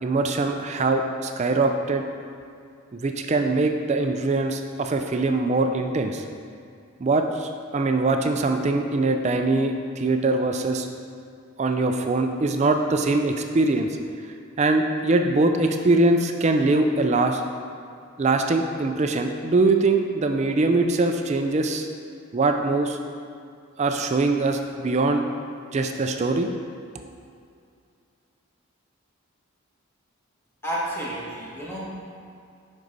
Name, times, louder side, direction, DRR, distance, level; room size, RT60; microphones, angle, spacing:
voice 1, 0.0-2.0 2.9-6.2 7.0-10.9 11.6-13.9 14.6-17.4 18.2-21.9 22.3-23.0 23.8-25.2 25.7-26.5, right 2 dB, 30° right, 5 dB, 0.4 m, -22 dB
voice 2, 30.6-32.0, right 1 dB, 10° left, -6 dB, 1.3 m, -31 dB
7.5 x 5.4 x 4.0 m, 2.4 s
head